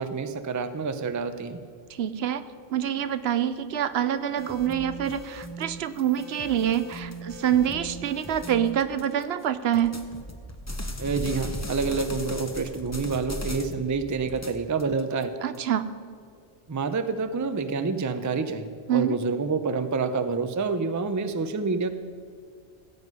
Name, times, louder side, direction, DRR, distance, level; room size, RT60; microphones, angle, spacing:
voice 1, 0.0-1.6 11.0-15.3 16.7-21.9, right 4 dB, 25° right, 10 dB, 0.5 m, -28 dB
voice 2, 1.9-2.4 2.7-10.0 15.4-15.9 18.9-19.1, right 10 dB, 70° right, 12 dB, 0.9 m, -26 dB
sound 1, 4.4-9.2 9.7-13.9 14.2-15.6, equal, 15° left, 0.8 m, -37 dB
16.0 x 8.0 x 5.5 m, 2.2 s
omnidirectional pair, 1.1 m